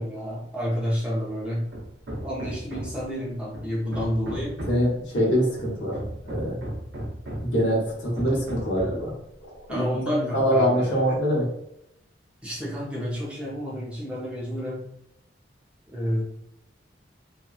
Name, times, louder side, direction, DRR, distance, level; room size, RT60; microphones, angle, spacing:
voice 1, 0.0-1.7 2.2-4.6 9.7-11.2 12.4-14.9 15.9-16.2, equal, 5° right, -5 dB, 0.6 m, -30 dB
Hammer, 1.7-3.1 3.5-4.9 5.6-7.6 8.2-9.1, equal, 75° right, 0.7 m, -35 dB
voice 2, 4.7-6.0 6.2-6.6 7.4-9.1 9.4-9.9 10.3-11.5, equal, 75° left, -3 dB, 0.9 m, -24 dB
2.8 x 2.3 x 2.3 m, 0.79 s
head